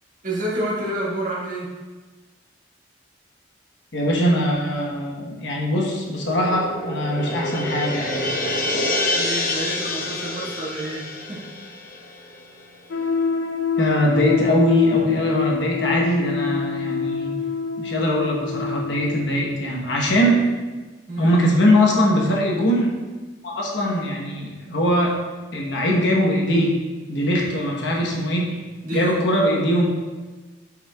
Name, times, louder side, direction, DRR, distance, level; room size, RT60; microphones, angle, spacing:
voice 1, 0.2-1.7 9.1-11.4 21.1-21.4 28.8-29.3, right 1 dB, 45° right, -6 dB, 1.7 m, -28 dB
voice 2, 3.9-8.3 13.8-17.4 17.8-20.4 21.2-22.9 23.4-25.2 25.5-26.8 27.1-28.5 28.9-29.9, equal, 65° left, -2 dB, 1.1 m, -21 dB
sound 1, 6.1-12.7, left 1 dB, 45° left, 0.7 m, -27 dB
sound 2, 12.9-19.2, left 5 dB, 85° left, 0.5 m, -26 dB
7.8 x 5.6 x 2.3 m, 1.3 s
head